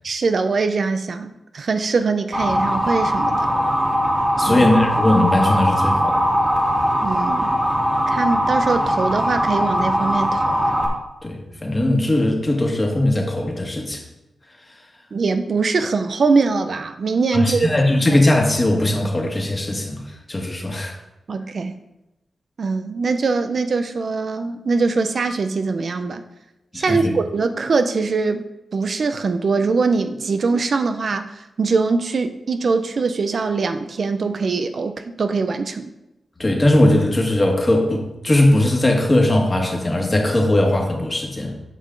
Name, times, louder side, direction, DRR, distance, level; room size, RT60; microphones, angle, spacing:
voice 1, 0.0-3.5 4.5-4.7 7.0-7.5 8.1-10.6 15.1-17.7 21.3-21.8 22.6-26.2 26.7-28.4 28.7-35.9, right 4 dB, 60° right, 8 dB, 0.5 m, -22 dB
Motor vehicle (road) / Siren, 2.3-10.9, equal, 20° right, 1.7 m, -20 dB
voice 2, 4.4-6.2 11.2-14.0 17.3-20.0 20.3-20.9 26.7-27.1 36.4-41.5, left 1 dB, 25° left, 1 dB, 1.7 m, -19 dB
8.3 x 5.5 x 3.8 m, 0.94 s
cardioid pair, 70°, 0 cm